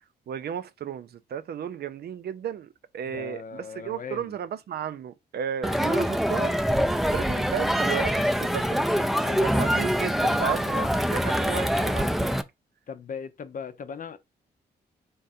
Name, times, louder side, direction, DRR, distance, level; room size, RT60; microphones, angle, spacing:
voice 1, 0.3-6.6 7.1-8.9 9.4-12.4, right 9 dB, 60° right, 0.5 m, -34 dB
voice 2, 3.1-4.3 9.2-9.7 12.9-14.2, left 6 dB, 50° left, 0.6 m, -38 dB
Crowd, 5.6-12.4, equal, ahead, 0.4 m, -24 dB
3.8 x 2.4 x 4.2 m
cardioid pair, 65°, 18 cm